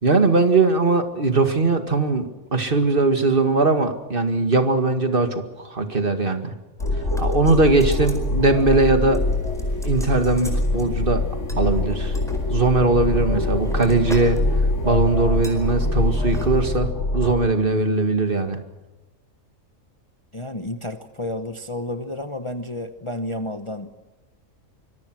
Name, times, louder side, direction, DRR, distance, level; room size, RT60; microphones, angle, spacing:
voice 1, 0.0-6.5 7.2-9.2 9.8-11.2 11.6-12.2 12.5-14.4 14.8-18.6, right 3 dB, 40° right, 7 dB, 2.2 m, -20 dB
sound 1, 6.8-17.3, left 2 dB, 60° left, 2.6 m, -24 dB
sound 2, 6.8-8.3 8.6-8.9 9.1-10.9 11.5-12.4 13.1-14.4 14.7-14.9 15.4-15.6 16.2-16.5 16.8-16.9, equal, ahead, 4.6 m, -42 dB
sound 3, 7.5-16.8, left 2 dB, 80° left, 4.9 m, -38 dB
voice 2, 20.3-24.0, left 1 dB, 25° left, 8 dB, 1.0 m, -31 dB
25.0 x 22.5 x 6.3 m, 1.1 s
omnidirectional pair, 1.4 m